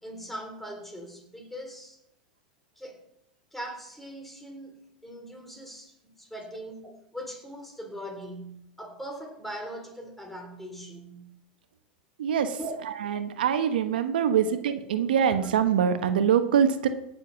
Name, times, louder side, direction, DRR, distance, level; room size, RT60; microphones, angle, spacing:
voice 1, 0.0-2.0 2.8-3.0 3.5-11.3 12.6-12.7 13.1-13.2, right 1 dB, 5° left, 3 dB, 3.5 m, -41 dB
voice 2, 12.2-12.6 12.9-16.9, right 8 dB, 85° right, 8 dB, 1.2 m, -24 dB
17.0 x 7.1 x 5.8 m, 0.78 s
hypercardioid pair, 115°, 5 cm